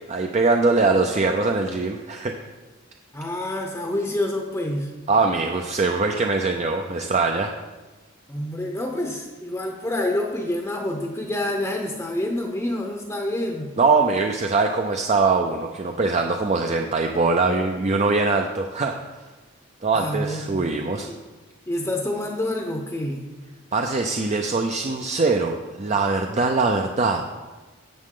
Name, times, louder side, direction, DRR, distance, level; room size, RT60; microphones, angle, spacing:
voice 1, 0.1-2.3 5.1-7.5 13.8-18.9 19.8-21.1 23.7-27.3, right 3 dB, 35° right, 4 dB, 0.5 m, -22 dB
voice 2, 3.1-4.9 8.3-13.7 19.9-20.7 20.9-21.2 21.7-23.3, left 1 dB, 15° left, 2 dB, 0.7 m, -27 dB
11.0 x 7.6 x 3.8 m, 1.2 s
head